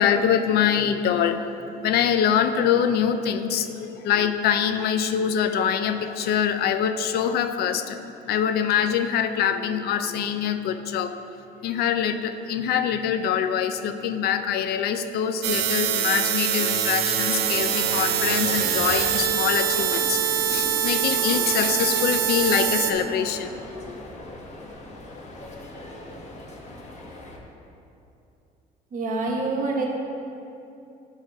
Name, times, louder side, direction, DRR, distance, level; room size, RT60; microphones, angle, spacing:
voice 1, 0.0-1.5 1.8-11.2 11.6-20.2 20.5-23.5 23.8-24.0, left 8 dB, 70° left, 9 dB, 0.5 m, -24 dB
sound 1, 15.4-22.9, right 9 dB, 75° right, 0.6 m, -24 dB
sound 2, 17.3-27.4, left 1 dB, 40° left, 1.1 m, -39 dB
voice 2, 28.9-29.9, right 3 dB, 50° right, -1 dB, 1.4 m, -26 dB
9.7 x 3.7 x 5.4 m, 2.8 s
cardioid pair, 110°, 17 cm